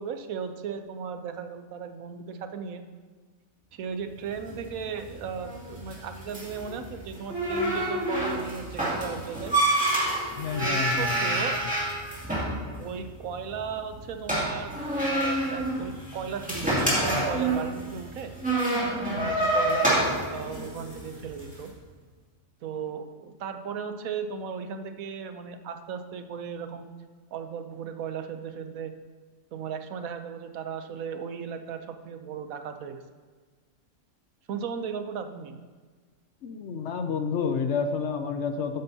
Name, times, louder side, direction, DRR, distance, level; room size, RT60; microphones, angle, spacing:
voice 1, 0.0-2.8 3.7-9.6 10.6-11.6 12.8-18.3 19.1-21.7 22.6-26.9 27.3-28.9 29.5-33.0 34.5-35.6, right 6 dB, 85° right, 8 dB, 1.2 m, -36 dB
sound 1, 4.3-21.6, right 1 dB, 5° right, 2.5 m, -28 dB
voice 2, 10.4-11.5 36.4-38.8, left 5 dB, 65° left, 8 dB, 0.8 m, -30 dB
12.5 x 8.9 x 2.8 m, 1.4 s
omnidirectional pair, 1.4 m